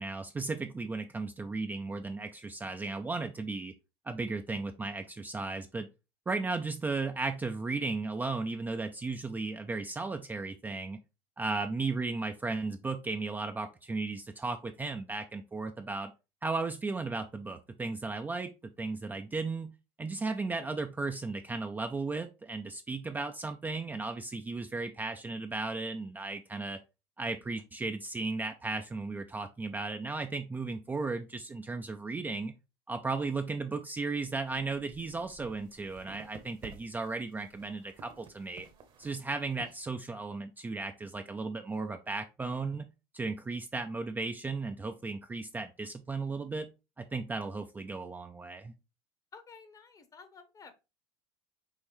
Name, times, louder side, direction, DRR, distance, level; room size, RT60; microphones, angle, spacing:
voice 1, 0.0-3.7 4.0-5.9 6.3-11.0 11.4-16.1 16.4-18.5 18.8-19.7 20.0-26.8 27.2-32.5 32.9-38.7 39.0-42.9 43.1-46.7 47.0-48.7, right 3 dB, 15° right, 6 dB, 0.4 m, -35 dB
sound 1, 34.2-39.9, right 5 dB, 40° right, 1.0 m, -54 dB
voice 2, 49.3-50.8, left 5 dB, 25° left, 10 dB, 0.9 m, -52 dB
5.6 x 3.1 x 3.1 m, 0.28 s
supercardioid pair, 105°, 13 cm